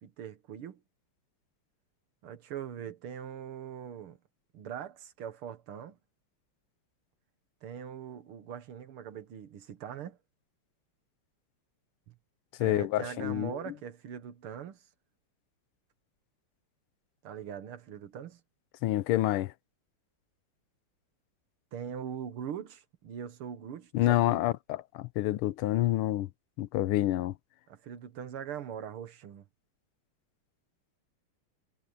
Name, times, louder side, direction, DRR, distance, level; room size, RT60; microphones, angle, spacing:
voice 1, 0.0-0.8 2.2-4.2 4.5-6.0 7.6-10.2 12.1-12.2 12.6-14.8 17.2-18.4 21.7-24.4 27.7-29.4, right 8 dB, 75° right, 2.2 m, -41 dB
voice 2, 12.6-13.5 18.8-19.5 23.9-26.3 26.6-27.3, left 15 dB, 85° left, 1.5 m, -28 dB
omnidirectional pair, 2.4 m